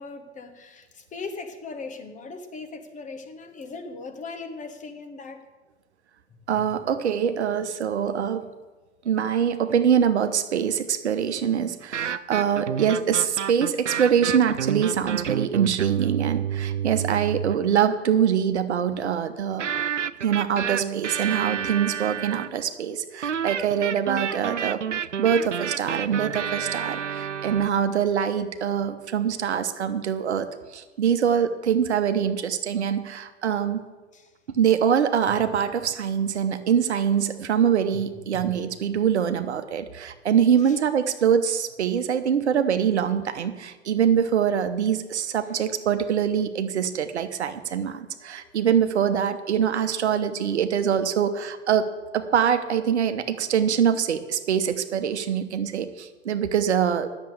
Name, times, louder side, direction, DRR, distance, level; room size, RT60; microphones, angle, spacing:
voice 1, 0.0-5.4 6.6-6.7 34.1-34.3 37.9-38.0 38.3-38.7 40.6-40.8 45.4-45.6 48.0-48.6 53.4-53.5 55.8-55.9, left 4 dB, 20° left, 6 dB, 1.4 m, -39 dB
voice 2, 6.5-8.4 9.0-19.6 20.2-24.8 25.2-30.5 30.7-33.8 34.5-51.9 52.1-57.1, right 8 dB, 70° right, 9 dB, 1.0 m, -24 dB
sound 1, 11.8-17.7 19.6-22.6 23.2-27.7, right 8 dB, 90° right, 0.5 m, -29 dB
10.5 x 7.1 x 8.2 m, 1.2 s
figure-of-eight pair, 95°, 35 cm